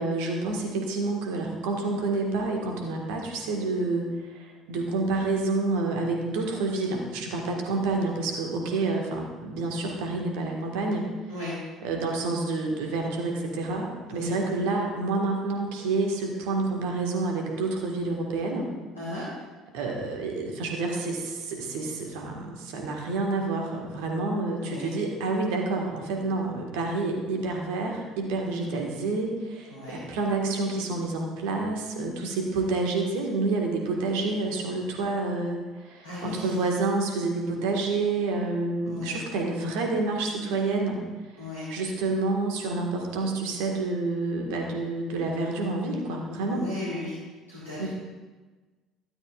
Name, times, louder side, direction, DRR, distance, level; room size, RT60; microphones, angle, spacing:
voice 1, 0.0-11.1 11.8-18.7 19.7-41.0 41.7-46.7 47.8-47.9, right 3 dB, 65° right, 1 dB, 1.7 m, -28 dB
voice 2, 29.7-30.0 36.0-36.7 38.8-39.2 41.4-41.6 46.4-47.2 47.5-47.9, left 2 dB, 85° left, -10 dB, 2.8 m, -36 dB
13.0 x 12.5 x 2.5 m, 1.3 s
figure-of-eight pair, 55°, 0 cm